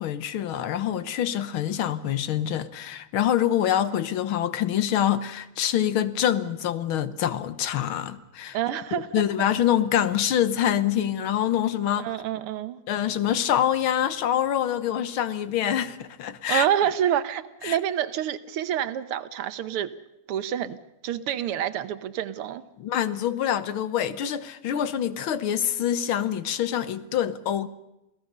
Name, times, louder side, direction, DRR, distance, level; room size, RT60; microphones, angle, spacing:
voice 1, 0.0-8.6 8.9-12.1 12.9-16.7 17.6-17.8 22.8-27.7, left 10 dB, 70° left, 1.8 m, -25 dB
voice 2, 8.5-9.1 12.0-12.8 16.5-19.9 20.3-20.8 21.0-22.6, right 10 dB, 85° right, 1.9 m, -27 dB
27.5 x 17.0 x 6.7 m
omnidirectional pair, 2.4 m